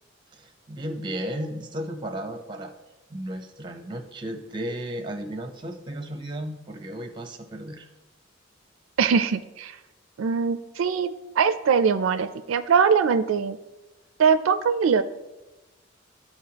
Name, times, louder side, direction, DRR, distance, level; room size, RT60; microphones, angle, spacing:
voice 1, 0.3-2.7 3.1-7.9, right 1 dB, 25° right, 5 dB, 0.8 m, -34 dB
voice 2, 9.0-9.8 10.2-13.6 14.2-15.0, right 6 dB, 80° right, 11 dB, 0.4 m, -22 dB
13.0 x 4.3 x 2.9 m, 1.0 s
head